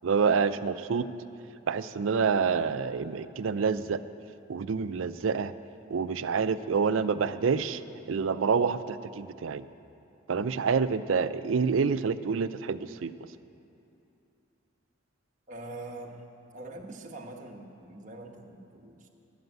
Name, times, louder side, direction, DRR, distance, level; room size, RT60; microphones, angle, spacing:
voice 1, 0.0-1.1 1.7-4.0 4.5-5.5 5.9-7.8 8.1-9.7 10.3-13.1, right 5 dB, 80° right, 12 dB, 0.5 m, -27 dB
voice 2, 15.5-16.2 16.5-19.1, right 2 dB, 40° right, 1 dB, 1.1 m, -43 dB
12.0 x 9.2 x 8.1 m, 2.8 s
head